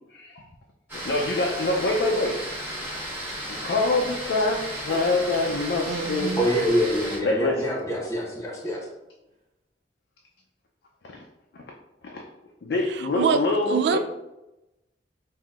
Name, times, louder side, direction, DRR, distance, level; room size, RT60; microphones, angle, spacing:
voice 1, 0.1-0.5 1.0-2.5 3.5-6.4 7.2-7.7 11.0-11.2 11.5-11.6 12.0-12.3 12.6-14.0, left 2 dB, 75° left, 0.5 m, -25 dB
sound 1, 0.9-7.2, right 1 dB, 10° right, 1.2 m, -34 dB
sound 2, 2.8-2.9 4.9-5.6 5.9-6.2 8.2-8.3 8.5-8.6, right 1 dB, 50° right, 1.0 m, -40 dB
voice 2, 5.9-6.5 13.1-13.4 13.7-14.0, right 6 dB, 75° right, 0.3 m, -24 dB
voice 3, 6.4-8.8, equal, 15° left, 0.8 m, -25 dB
5.4 x 2.7 x 2.4 m
head